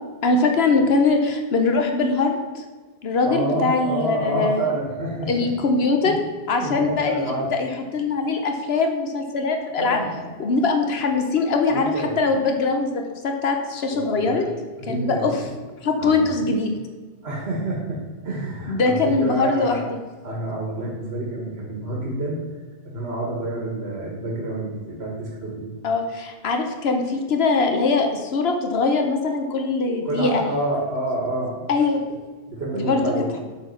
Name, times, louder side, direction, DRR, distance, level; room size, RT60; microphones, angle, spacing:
voice 1, 0.2-2.6 3.0-4.7 5.3-6.1 6.5-10.0 10.4-14.4 14.9-15.3 15.8-16.7 18.7-20.0 25.8-30.4 31.7-32.0 32.7-33.0, left 3 dB, 75° left, 4 dB, 1.0 m, -22 dB
voice 2, 3.2-5.6 6.0-6.1 6.6-7.5 9.8-10.3 11.7-12.2 13.9-15.6 16.0-16.5 17.2-18.0 18.2-19.8 20.2-22.4 22.8-25.7 30.0-31.6 32.1-32.2 32.5-33.4, right 1 dB, 80° right, -3 dB, 1.8 m, -28 dB
7.6 x 4.1 x 5.9 m, 1.4 s
omnidirectional pair, 1.1 m